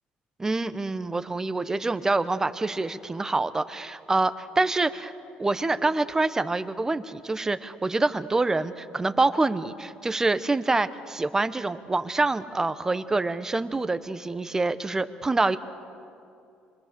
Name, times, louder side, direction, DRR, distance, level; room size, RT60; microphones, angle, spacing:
voice 1, 0.4-5.1 5.4-15.6, right 3 dB, 15° right, 12 dB, 0.9 m, -26 dB
26.0 x 23.0 x 6.9 m, 2.7 s
cardioid pair, 100°, 3 cm